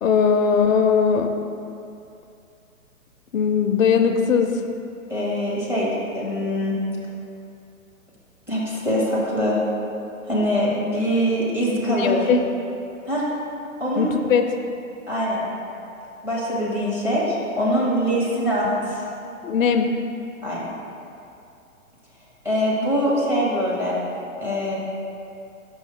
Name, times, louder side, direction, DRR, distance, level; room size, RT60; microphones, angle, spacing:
voice 1, 0.0-1.3 3.3-4.6 11.8-12.5 14.0-14.5 19.4-20.0, left 6 dB, 65° left, 6 dB, 0.6 m, -19 dB
voice 2, 5.1-6.7 8.5-9.6 10.3-12.3 13.1-13.2 13.8-14.1 15.1-15.5 16.2-19.0 20.4-20.7 22.4-24.0 24.4-24.7, equal, 5° right, -6 dB, 0.8 m, -23 dB
6.1 x 5.4 x 3.6 m, 2.6 s
hypercardioid pair, 130°, 42 cm